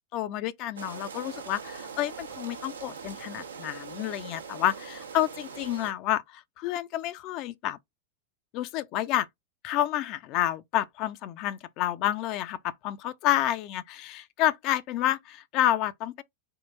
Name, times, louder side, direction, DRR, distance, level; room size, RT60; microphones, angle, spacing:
voice 1, 0.1-7.8 8.5-9.3 9.6-16.2, left 13 dB, 40° left, 0.4 m, -29 dB
sound 1, 0.8-5.9, right 6 dB, 70° right, 0.7 m, -42 dB
3.7 x 2.3 x 4.3 m
figure-of-eight pair, 90°, 0 cm